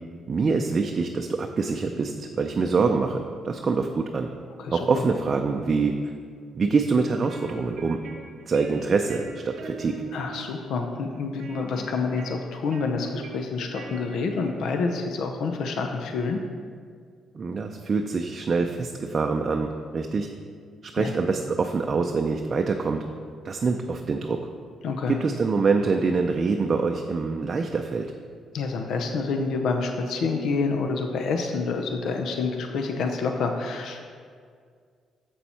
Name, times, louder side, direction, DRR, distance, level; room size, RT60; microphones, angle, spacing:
voice 1, 0.3-4.3 4.7-5.9 6.5-8.0 8.5-9.9 17.3-19.7 19.9-20.3 20.9-23.0 23.4-24.4 25.1-28.1, right 4 dB, 40° right, 4 dB, 0.4 m, -25 dB
voice 2, 4.6-5.1 10.1-16.4 21.0-21.1 24.8-25.2 28.5-34.0, left 4 dB, 75° left, 4 dB, 0.6 m, -28 dB
sound 1, 7.0-15.0, right 4 dB, 70° right, 0.8 m, -42 dB
7.2 x 6.9 x 4.3 m, 2.1 s
cardioid pair, 90°, 0 cm